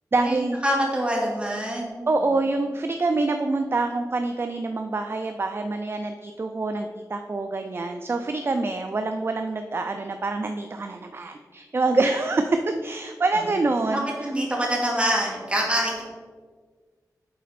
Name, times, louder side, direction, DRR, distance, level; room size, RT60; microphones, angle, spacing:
voice 1, 0.1-0.6 2.1-14.1, right 3 dB, 35° right, 6 dB, 0.4 m, -26 dB
voice 2, 0.6-1.9 13.3-13.4 13.9-16.0, equal, 15° right, -2 dB, 1.8 m, -25 dB
8.5 x 4.1 x 4.1 m, 1.6 s
wide cardioid pair, 100°, 7 cm